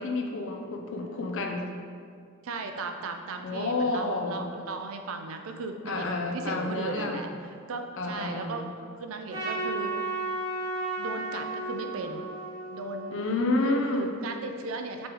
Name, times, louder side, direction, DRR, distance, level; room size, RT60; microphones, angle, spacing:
voice 1, 0.0-1.7 3.4-4.5 5.9-7.3 8.0-8.7 13.1-14.1, left 2 dB, 60° left, 3 dB, 0.5 m, -29 dB
voice 2, 2.4-8.6 9.0-10.2 11.0-12.2 12.7-13.2 13.6-15.1, right 3 dB, 70° right, 5 dB, 0.4 m, -36 dB
Trumpet, 9.3-13.7, right 2 dB, 20° right, 0.9 m, -34 dB
5.3 x 3.4 x 2.9 m, 2.3 s
head